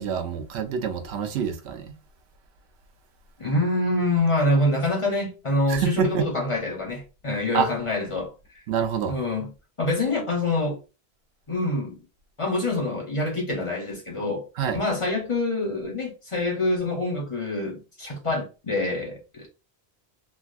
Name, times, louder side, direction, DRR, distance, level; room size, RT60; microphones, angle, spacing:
voice 1, 0.0-1.9 5.7-6.3 7.5-7.7 8.7-9.2 14.6-14.8, right 7 dB, 90° right, 0.8 m, -26 dB
voice 2, 3.4-8.3 9.1-9.5 9.8-10.8 11.5-12.0 12.4-14.5 14.7-19.5, left 2 dB, 35° left, 0.6 m, -26 dB
3.2 x 2.5 x 2.3 m
omnidirectional pair, 1.1 m